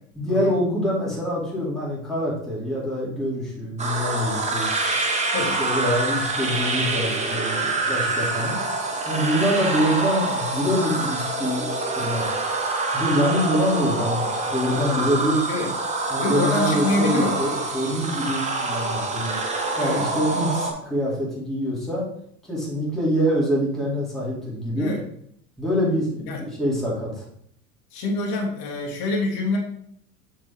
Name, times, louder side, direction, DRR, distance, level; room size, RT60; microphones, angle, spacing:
voice 1, 0.2-4.7 5.6-8.6 9.0-11.7 12.0-12.3 12.9-15.4 16.1-19.3 19.8-22.1 22.5-24.9 25.6-27.2, equal, ahead, -6 dB, 2.5 m, -25 dB
sound 1, 3.8-20.7, right 2 dB, 15° right, 1.0 m, -26 dB
voice 2, 16.2-17.4 19.8-20.0 24.8-25.0 26.3-26.4 27.9-29.6, left 3 dB, 50° left, -1 dB, 2.1 m, -26 dB
6.3 x 4.7 x 3.5 m, 0.68 s
hypercardioid pair, 95°, 47 cm